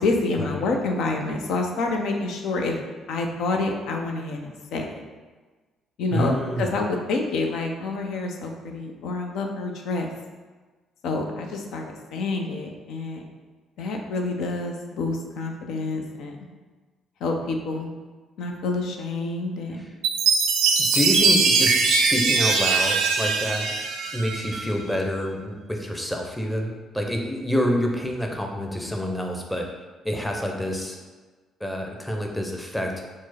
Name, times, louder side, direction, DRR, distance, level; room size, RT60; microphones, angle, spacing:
voice 1, 0.0-2.8 3.1-5.0 6.0-10.1 11.0-13.2 13.8-16.4 17.2-17.9 18.4-19.8, left 3 dB, 60° left, 3 dB, 0.5 m, -28 dB
voice 2, 6.1-6.8 19.7-19.9 20.8-23.7 24.1-29.7 30.0-31.0 31.6-32.9, equal, 10° left, 2 dB, 0.7 m, -27 dB
Chime, 20.0-24.6, right 4 dB, 65° right, 0.4 m, -21 dB
4.5 x 2.0 x 4.1 m, 1.3 s
figure-of-eight pair, 45°, 0 cm